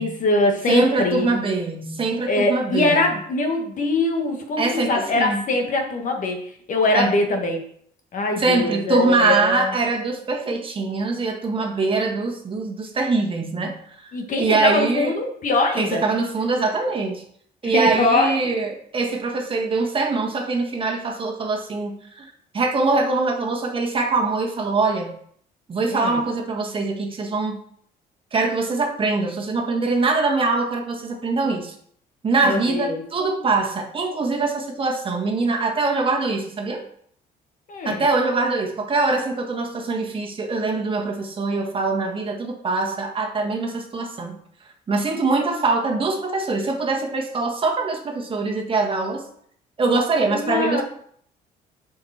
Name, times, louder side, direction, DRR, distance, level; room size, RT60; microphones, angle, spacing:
voice 1, 0.0-1.3 2.3-7.6 8.1-9.7 14.1-16.0 17.6-18.4 25.9-26.2 32.4-33.0 37.7-38.0 50.3-50.8, left 2 dB, 50° left, 3 dB, 1.7 m, -22 dB
voice 2, 0.7-3.1 4.6-5.4 6.9-7.2 8.4-15.1 15.7-17.2 17.6-25.1 25.7-27.6 28.3-31.7 32.2-36.8 37.8-44.4 44.9-49.2 49.8-50.8, right 3 dB, 30° right, 1 dB, 1.6 m, -23 dB
7.7 x 5.4 x 4.3 m, 0.63 s
cardioid pair, 110°, 17 cm